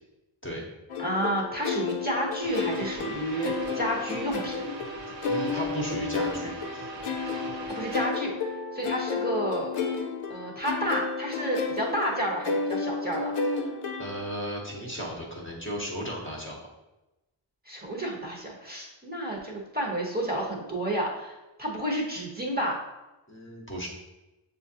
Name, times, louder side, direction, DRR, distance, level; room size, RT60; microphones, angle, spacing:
sound 1, 0.9-14.5, left 4 dB, 85° left, 0.6 m, -32 dB
voice 1, 1.0-4.6 7.7-8.3 8.7-9.7 10.3-13.3 17.7-22.8, right 1 dB, 20° right, -3 dB, 1.0 m, -30 dB
sound 2, 2.4-8.1, right 3 dB, 60° right, 0.7 m, -40 dB
voice 2, 5.2-6.9 14.0-16.6 23.3-23.9, equal, 25° left, -2 dB, 0.9 m, -35 dB
6.7 x 2.5 x 2.8 m, 1.0 s
cardioid pair, 45°, 49 cm